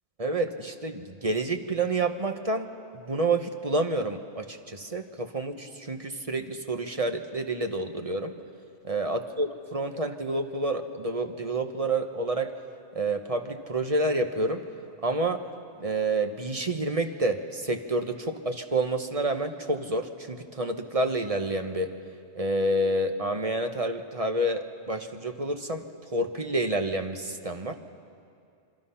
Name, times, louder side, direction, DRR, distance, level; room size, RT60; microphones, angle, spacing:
voice 1, 0.2-2.7 3.1-8.3 8.8-12.5 12.9-14.6 15.0-15.4 15.8-21.9 22.3-27.8, right 2 dB, 30° right, 6 dB, 1.1 m, -29 dB
27.0 x 24.0 x 5.7 m, 2.4 s
omnidirectional pair, 1.2 m